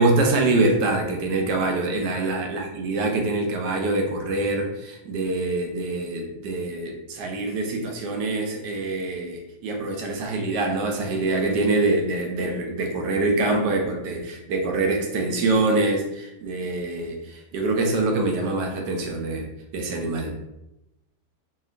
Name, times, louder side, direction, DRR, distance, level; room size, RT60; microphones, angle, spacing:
voice 1, 0.0-19.5 19.7-20.4, right 2 dB, 80° right, 2 dB, 1.2 m, -25 dB
2.9 x 2.8 x 2.4 m, 0.91 s
omnidirectional pair, 1.9 m